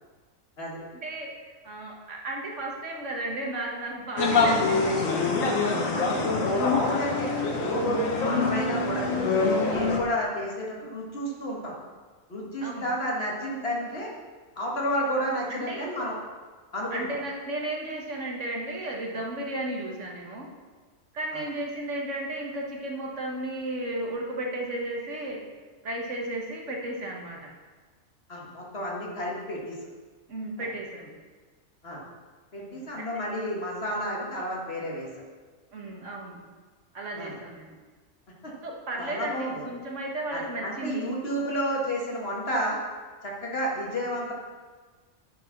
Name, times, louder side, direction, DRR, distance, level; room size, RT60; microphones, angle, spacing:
voice 1, 0.9-1.3 1.6-5.0 6.0-6.2 6.5-6.6 12.6-12.9 15.5-15.9 16.9-20.5 21.1-25.4 25.8-27.5 30.3-31.1 32.7-33.2 35.7-36.4 36.9-37.8 38.6-41.0, right 1 dB, 65° right, -1 dB, 1.7 m, -34 dB
sound 1, 4.2-10.0, left 3 dB, 80° left, 1.5 m, -25 dB
voice 2, 5.8-6.1 6.5-7.9 8.2-9.3 9.7-11.7 12.3-14.1 14.6-16.2 16.7-17.0 21.3-21.4 28.3-29.7 31.8-32.0 32.5-35.1 37.2-37.3 38.4-38.5 39.0-39.6 40.3-42.8 43.2-44.3, equal, 50° left, -3 dB, 1.9 m, -31 dB
10.5 x 4.8 x 5.8 m, 1.4 s
omnidirectional pair, 1.4 m